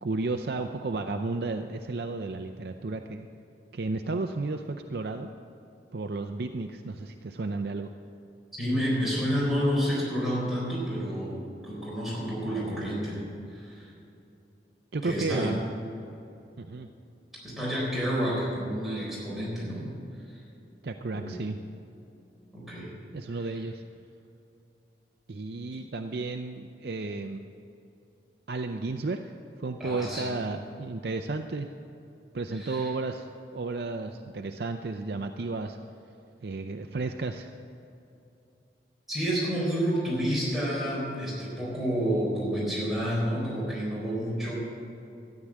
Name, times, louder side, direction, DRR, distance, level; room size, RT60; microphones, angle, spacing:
voice 1, 0.0-3.3 3.7-5.3 5.9-7.9 14.9-15.6 16.6-16.9 20.8-21.6 23.1-23.8 25.3-27.4 28.5-29.3 29.6-31.7 32.3-33.3 33.5-35.8 36.4-37.5, right 3 dB, 65° right, 6 dB, 0.5 m, -33 dB
voice 2, 8.6-11.4 11.6-13.2 13.5-13.9 15.0-15.6 17.4-19.9 21.1-21.3 22.5-22.9 23.3-23.4 29.8-30.3 32.5-32.9 39.1-44.5, equal, ahead, -7 dB, 4.0 m, -29 dB
13.5 x 9.9 x 7.4 m, 2.7 s
head